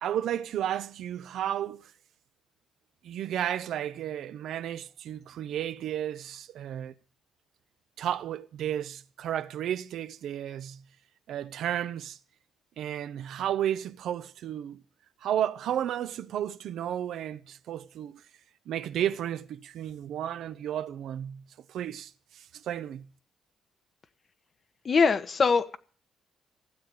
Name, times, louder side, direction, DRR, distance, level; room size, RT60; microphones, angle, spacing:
voice 1, 0.0-1.9 3.0-6.9 8.0-10.8 11.3-12.2 12.8-14.8 15.2-18.2 18.7-21.4 21.7-23.1, right 10 dB, 75° right, 0.9 m, -33 dB
voice 2, 24.8-25.8, left 5 dB, 45° left, 1.2 m, -22 dB
16.0 x 7.8 x 8.6 m
cardioid pair, 90°, 0 cm